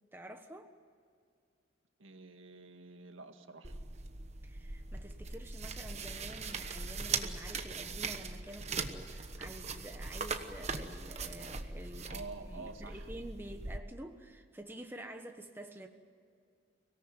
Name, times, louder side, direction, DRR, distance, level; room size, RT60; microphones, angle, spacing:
voice 1, 0.1-0.7 4.4-15.9, right 1 dB, 10° right, 5 dB, 1.3 m, -49 dB
voice 2, 2.0-3.8 12.1-13.1, right 3 dB, 85° right, 6 dB, 1.8 m, -48 dB
sound 1, 3.6-13.8, right 4 dB, 35° right, 1.2 m, -40 dB
24.5 x 17.5 x 9.1 m, 2.2 s
head